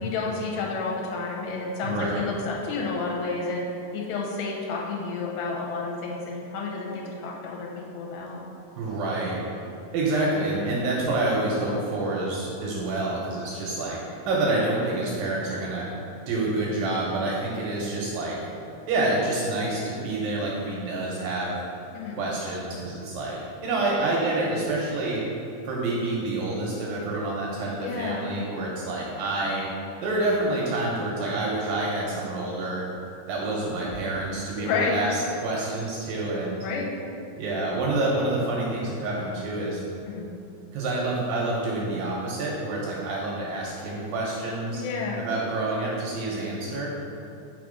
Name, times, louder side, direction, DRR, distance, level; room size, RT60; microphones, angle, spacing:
voice 1, 0.0-3.7 3.9-8.4 21.9-22.2 27.8-28.3 34.6-35.0 36.6-36.9 40.1-40.3 44.7-45.2, left 4 dB, 90° left, -2 dB, 2.7 m, -30 dB
voice 2, 1.8-2.3 8.8-9.5 9.9-15.9 16.3-18.5 18.9-21.6 22.1-25.3 25.6-29.7 30.0-32.9 33.3-36.6 37.4-39.8 40.7-44.8 45.2-46.9, right 2 dB, 85° right, -4 dB, 2.0 m, -28 dB
5.8 x 3.6 x 5.0 m, 2.7 s
omnidirectional pair, 4.7 m